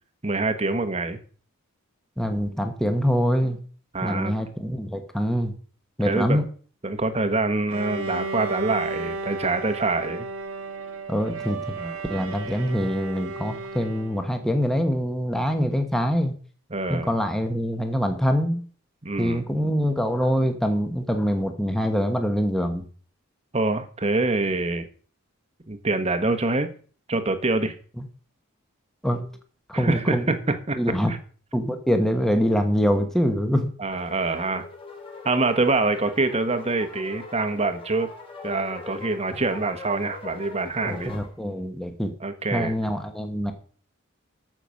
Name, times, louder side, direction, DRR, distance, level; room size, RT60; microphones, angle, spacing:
voice 1, 0.2-1.2 3.9-4.3 6.0-6.4 6.8-10.3 11.8-12.0 16.7-17.1 19.0-19.4 23.5-24.9 25.7-26.7 27.1-27.7 29.7-30.8 31.1-31.2 33.8-34.7 35.2-38.1 38.4-41.1 42.2-42.8, right 3 dB, 30° right, 9 dB, 1.2 m, -25 dB
voice 2, 2.2-3.6 4.0-5.5 6.0-6.4 11.1-11.8 12.1-16.3 16.9-18.6 19.2-22.8 28.0-28.1 29.0-29.3 29.7-30.3 30.8-31.1 31.5-33.7 40.8-42.1 42.5-43.5, equal, ahead, 5 dB, 1.3 m, -24 dB
Bowed string instrument, 7.7-14.4, right 3 dB, 80° right, 1.5 m, -34 dB
sound 1, 33.9-41.3, left 3 dB, 25° left, 3.2 m, -41 dB
14.0 x 6.0 x 6.4 m, 0.44 s
head